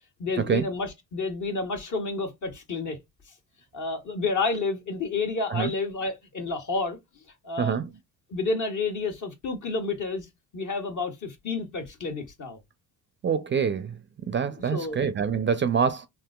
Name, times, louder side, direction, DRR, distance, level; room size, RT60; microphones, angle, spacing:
voice 1, 0.2-3.0 3.7-7.0 7.4-7.9 8.3-10.3 10.5-12.6 14.6-15.0 15.5-15.6, left 3 dB, 50° left, 1.3 m, -30 dB
voice 2, 13.2-13.9 14.2-16.1, right 6 dB, 30° right, 0.4 m, -25 dB
3.6 x 2.6 x 2.3 m
supercardioid pair, 65°, 39 cm